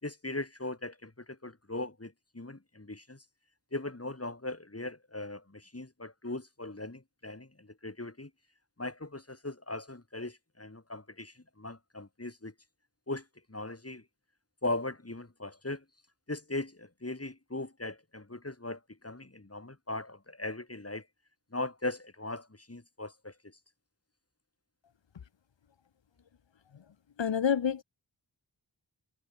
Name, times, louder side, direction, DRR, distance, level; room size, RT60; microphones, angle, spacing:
voice 1, 0.0-3.2 3.7-8.3 8.8-12.5 13.1-14.0 14.6-15.8 16.3-21.1 21.5-23.6, left 2 dB, 35° left, 3.9 m, -39 dB
voice 2, 27.2-27.8, left 7 dB, 80° left, 0.9 m, -27 dB
wide cardioid pair, 55°, 44 cm